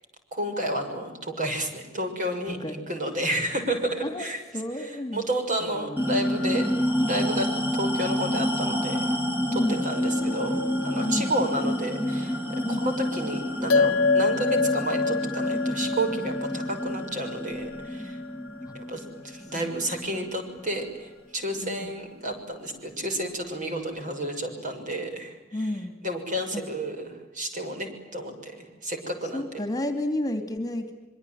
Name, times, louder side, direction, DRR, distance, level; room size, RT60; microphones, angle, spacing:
voice 1, 0.3-4.4 4.8-6.7 7.0-9.1 9.5-18.2 18.7-25.7 26.0-29.5, right 1 dB, 40° right, 5 dB, 6.6 m, -31 dB
voice 2, 2.5-2.8 4.0-4.3 4.5-5.2 5.6-6.1 9.5-9.9 11.0-11.4 12.6-12.9 18.7-18.8 19.5-19.7 20.1-20.6 21.6-21.9 25.5-26.0 26.5-26.6 29.3-30.9, left 1 dB, 20° left, 7 dB, 2.7 m, -31 dB
sound 1, 6.0-20.8, equal, 10° right, 2.5 m, -29 dB
sound 2, 13.7-18.4, left 4 dB, 90° left, 0.8 m, -26 dB
26.0 x 24.0 x 9.3 m, 1.1 s
head